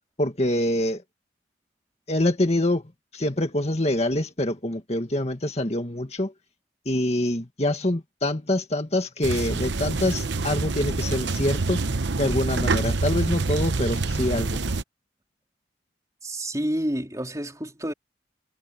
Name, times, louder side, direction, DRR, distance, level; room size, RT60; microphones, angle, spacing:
voice 1, 0.2-1.0 2.1-6.3 6.9-11.8 12.2-14.6, left 1 dB, 35° left, 2.0 m, -25 dB
sound 1, 9.2-14.8, right 3 dB, 75° right, 0.9 m, -26 dB
voice 2, 16.2-17.9, right 1 dB, 20° right, 4.0 m, -29 dB
head